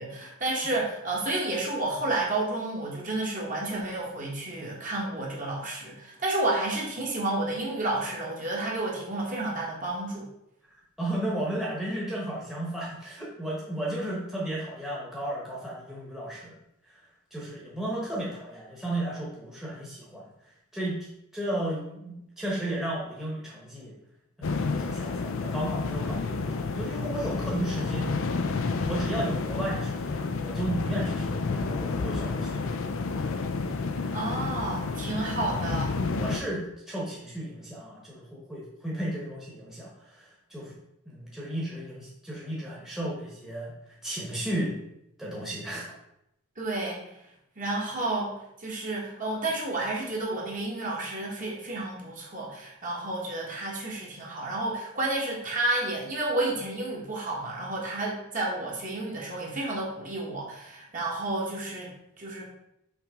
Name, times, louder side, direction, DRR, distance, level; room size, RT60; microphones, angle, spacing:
voice 1, 0.0-10.2 34.1-36.0 46.6-47.0 47.6-48.3 48.6-62.4, right 2 dB, 35° right, -3 dB, 1.6 m, -31 dB
voice 2, 11.0-16.5 16.9-17.0 17.3-20.2 20.7-21.0 21.3-23.9 24.4-28.1 28.8-32.8 36.0-40.7 41.1-43.7 44.0-44.8 45.2-45.9, right 1 dB, ahead, -6 dB, 1.2 m, -34 dB
sound 1, 24.4-36.4, left 4 dB, 65° left, 0.5 m, -30 dB
5.7 x 3.5 x 5.1 m, 0.82 s
head